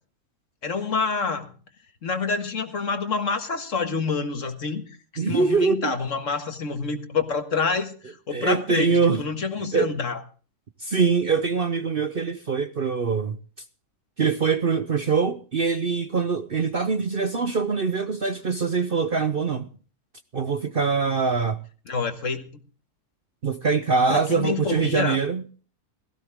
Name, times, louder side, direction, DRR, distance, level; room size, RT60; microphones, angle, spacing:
voice 1, 0.6-1.5 2.0-4.8 5.1-10.2 21.9-22.5 24.1-25.2, left 4 dB, 55° left, 1.9 m, -27 dB
voice 2, 5.2-5.9 8.3-9.2 9.6-9.9 10.8-13.4 14.2-19.7 20.3-21.6 23.4-25.4, right 5 dB, 45° right, 0.9 m, -23 dB
17.0 x 15.0 x 3.6 m
omnidirectional pair, 1.6 m